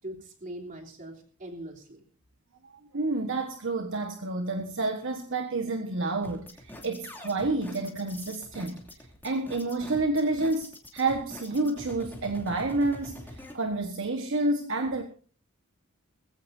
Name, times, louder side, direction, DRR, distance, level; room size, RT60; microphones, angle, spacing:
voice 1, 0.0-2.1, right 1 dB, 35° right, 3.3 m, -41 dB
voice 2, 2.6-8.8 9.2-15.0, right 2 dB, 60° right, 1.3 m, -29 dB
sound 1, 6.2-13.5, left 1 dB, 10° left, 2.8 m, -44 dB
20.5 x 16.0 x 2.7 m
head